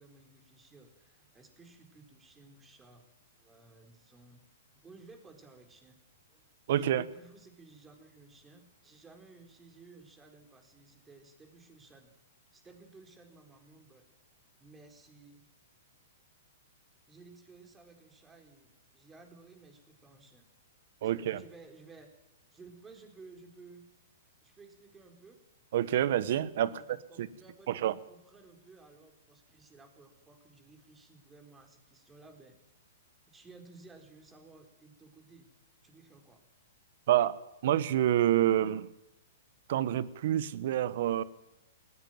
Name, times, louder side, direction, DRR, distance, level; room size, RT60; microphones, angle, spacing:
voice 1, 0.0-3.1 3.4-4.4 4.8-6.0 6.3-6.5 6.8-12.1 12.5-14.1 14.6-15.4 17.1-20.5 21.2-22.1 22.5-23.8 24.4-25.4 26.7-32.6 33.3-35.5 35.8-36.4, right 3 dB, 15° right, 5 dB, 4.3 m, -56 dB
voice 2, 6.7-7.0 21.0-21.4 25.7-27.3 27.7-27.9 37.1-37.4 37.6-38.9 39.7-41.2, right 12 dB, 60° right, 17 dB, 1.2 m, -28 dB
19.0 x 17.0 x 9.2 m, 0.91 s
hypercardioid pair, 125°, 0 cm